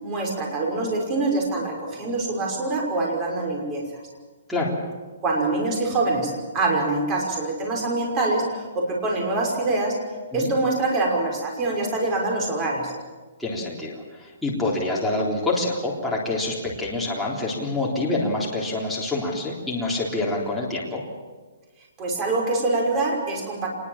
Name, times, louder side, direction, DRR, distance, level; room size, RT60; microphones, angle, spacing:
voice 1, 0.0-3.8 5.2-10.0 10.3-12.9 22.0-23.7, right 2 dB, 20° right, 0 dB, 5.8 m, -25 dB
voice 2, 13.4-21.0, left 2 dB, ahead, -6 dB, 3.7 m, -26 dB
25.5 x 21.0 x 7.4 m, 1.3 s
hypercardioid pair, 170°, 0 cm